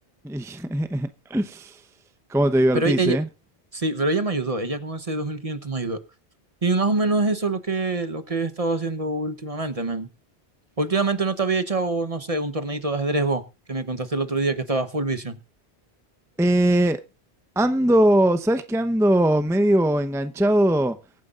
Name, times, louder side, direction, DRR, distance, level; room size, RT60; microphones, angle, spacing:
voice 1, 0.2-1.8 2.3-3.3 16.4-17.0 17.6-21.0, right 1 dB, 5° right, 0.7 m, -20 dB
voice 2, 2.7-3.2 3.7-6.0 6.6-10.1 10.8-13.4 13.7-15.4, right 3 dB, 35° right, 1.1 m, -25 dB
24.0 x 9.4 x 2.5 m
omnidirectional pair, 1.1 m